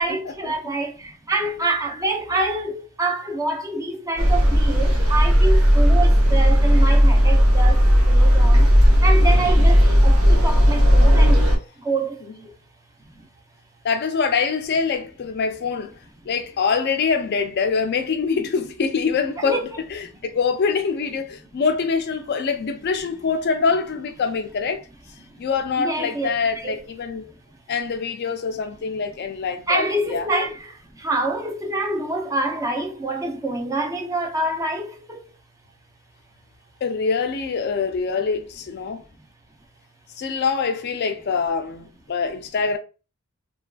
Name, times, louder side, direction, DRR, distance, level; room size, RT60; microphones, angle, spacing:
voice 1, 0.0-8.7 9.0-11.4 11.8-12.5 19.4-19.6 25.8-26.3 26.6-26.8 29.7-30.7 31.0-35.2, right 2 dB, 15° right, 0.4 m, -26 dB
sound 1, 4.2-11.6, equal, 85° right, 1.0 m, -15 dB
voice 2, 13.8-15.9 16.3-19.6 19.9-24.8 25.4-27.2 27.7-30.3 36.8-39.0 40.2-42.8, left 5 dB, 50° left, 0.4 m, -24 dB
3.0 x 2.4 x 2.3 m
head